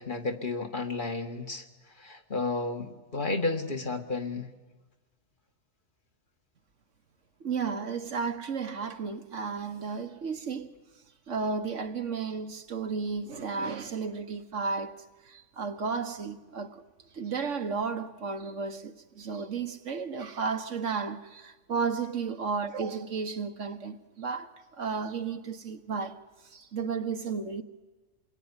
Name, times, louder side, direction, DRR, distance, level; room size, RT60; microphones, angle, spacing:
voice 1, 0.0-1.6 2.0-4.5, left 3 dB, 40° left, 2.0 m, -32 dB
voice 2, 7.4-10.7 11.3-14.9 15.3-16.8 17.1-26.2 26.5-27.6, right 5 dB, 65° right, 1.6 m, -33 dB
28.0 x 21.5 x 9.8 m
omnidirectional pair, 1.4 m